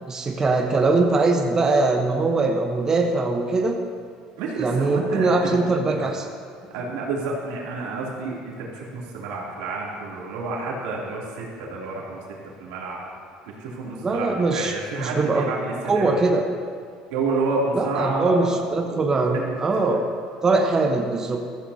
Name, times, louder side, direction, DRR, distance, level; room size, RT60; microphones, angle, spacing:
voice 1, 0.0-3.8 4.6-6.2 14.0-15.5 15.9-16.4 17.7-20.0 20.4-21.4, right 3 dB, 25° right, 3 dB, 1.0 m, -22 dB
voice 2, 4.4-5.6 5.9-6.1 6.7-12.2 12.6-13.0 13.6-16.1 17.1-19.8, right 3 dB, 90° right, -4 dB, 2.9 m, -29 dB
14.5 x 14.0 x 2.8 m, 2.1 s
cardioid pair, 110°, 2 cm